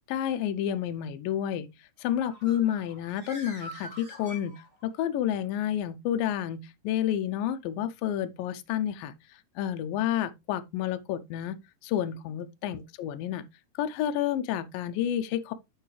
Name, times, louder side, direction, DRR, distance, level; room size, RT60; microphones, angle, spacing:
voice 1, 0.1-1.7 2.0-4.6 4.8-9.1 9.6-13.4 13.8-15.5, left 10 dB, 85° left, 2.4 m, -30 dB
Bird, 2.0-5.0, equal, 15° right, 2.5 m, -45 dB
10.0 x 4.7 x 3.2 m
omnidirectional pair, 4.0 m